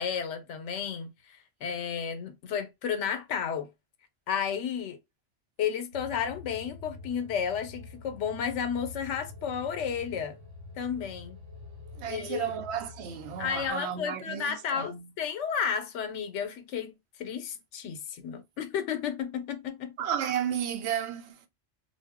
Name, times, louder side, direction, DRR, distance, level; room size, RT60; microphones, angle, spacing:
voice 1, 0.0-3.7 4.3-5.0 5.6-10.4 10.8-11.4 12.0-12.5 13.4-19.9, left 7 dB, 90° left, 0.9 m, -32 dB
sound 1, 5.9-13.7, left 3 dB, 90° right, 1.1 m, -46 dB
voice 2, 12.0-15.1 20.0-21.5, right 9 dB, 70° right, 0.8 m, -33 dB
2.5 x 2.0 x 3.4 m
omnidirectional pair, 1.2 m